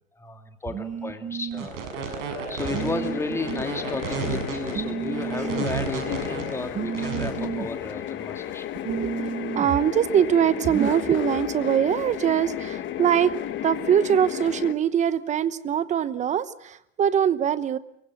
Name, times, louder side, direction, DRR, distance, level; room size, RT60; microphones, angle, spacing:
voice 1, 0.2-8.6, left 2 dB, 5° left, 6 dB, 2.3 m, -34 dB
voice 2, 0.7-1.7 2.7-3.2 3.5-3.6 4.7-5.7 6.7-7.7 8.8-13.3 13.6-17.8, right 9 dB, 20° right, 16 dB, 0.9 m, -24 dB
sound 1, 1.5-7.3, right 5 dB, 65° right, 6.6 m, -32 dB
sound 2, 2.6-14.7, left 11 dB, 30° left, 1.6 m, -33 dB
24.5 x 23.0 x 7.1 m, 0.74 s
supercardioid pair, 135°, 38 cm